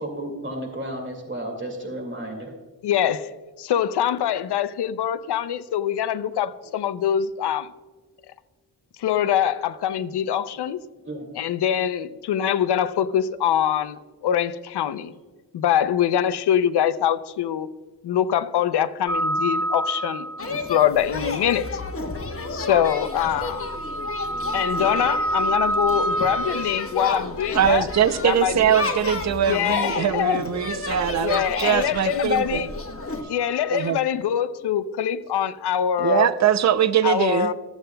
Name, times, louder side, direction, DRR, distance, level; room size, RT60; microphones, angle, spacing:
voice 1, 0.0-2.6 11.0-11.3 15.1-15.2, right 1 dB, 30° right, 2.1 m, -33 dB
voice 2, 2.8-3.3 3.6-7.7 9.0-10.8 11.4-15.1 15.5-17.7 18.0-21.7 22.5-23.6 24.5-27.9 28.2-28.7 29.5-30.4 31.2-32.7 33.3-36.3 37.0-37.5, left 10 dB, 90° left, 0.6 m, -24 dB
sound 1, 19.1-20.7 22.7-27.0 33.0-33.8, right 1 dB, 10° left, 0.7 m, -28 dB
sound 2, 20.4-33.2, left 3 dB, 35° left, 1.1 m, -31 dB
voice 3, 27.5-32.7 33.7-34.0 36.0-37.5, right 9 dB, 45° right, 0.6 m, -22 dB
14.5 x 8.0 x 2.2 m
cardioid pair, 75°, 39 cm